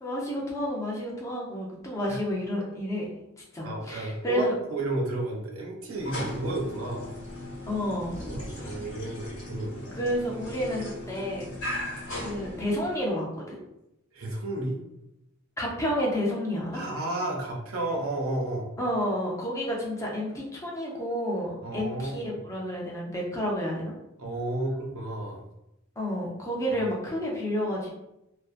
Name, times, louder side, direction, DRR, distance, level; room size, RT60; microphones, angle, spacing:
voice 1, 0.0-3.1 3.5-4.5 7.7-8.2 8.6-8.8 9.9-11.4 12.1-13.6 15.6-16.8 18.8-24.0 26.0-27.9, equal, 15° left, -3 dB, 0.5 m, -30 dB
voice 2, 3.6-7.1 8.3-9.8 14.1-14.8 16.7-18.7 21.6-22.2 24.2-25.4, right 2 dB, 70° right, -1 dB, 0.6 m, -32 dB
sound 1, 5.9-13.1, left 1 dB, 80° left, 1.1 m, -38 dB
2.6 x 2.1 x 2.4 m, 0.88 s
head